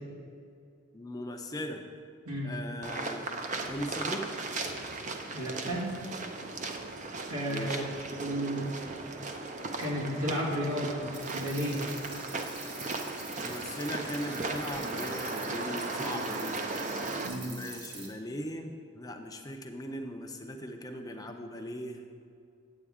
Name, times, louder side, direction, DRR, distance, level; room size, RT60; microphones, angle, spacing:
voice 1, 0.9-1.8 2.4-3.3 3.7-4.3 7.5-7.8 13.4-16.6 17.4-22.0, left 1 dB, 15° left, 4 dB, 0.5 m, -39 dB
sound 1, 2.8-17.3, right 3 dB, 35° right, 0.5 m, -37 dB
voice 2, 5.3-5.9 7.3-7.8 8.2-8.7 9.8-11.8 17.2-17.5, equal, 85° right, -4 dB, 2.0 m, -32 dB
sound 2, 11.1-18.1, right 3 dB, 50° right, 1.6 m, -45 dB
8.7 x 8.3 x 3.6 m, 2.4 s
head